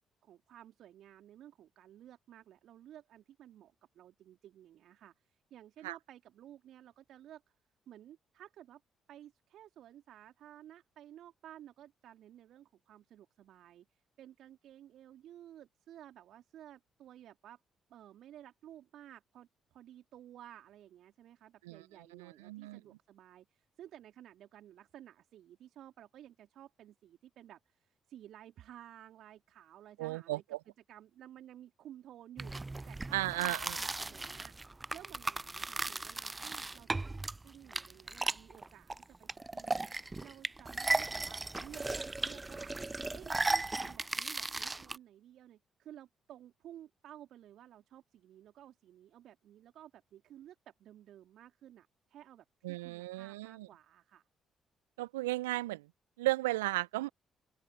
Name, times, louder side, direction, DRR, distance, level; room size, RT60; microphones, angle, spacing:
voice 1, 0.0-7.5 7.9-8.8 9.1-17.6 17.9-30.4 30.9-34.5 34.9-39.8 40.2-42.7 43.1-54.2, right 11 dB, 60° right, 3.5 m, -55 dB
voice 2, 22.1-22.8 30.0-30.6 33.1-33.8 52.6-53.7 55.0-55.9 56.2-57.1, right 19 dB, 80° right, 1.3 m, -35 dB
sound 1, 32.4-45.0, right 2 dB, 20° right, 0.4 m, -36 dB
open air
figure-of-eight pair, 40°, 0 cm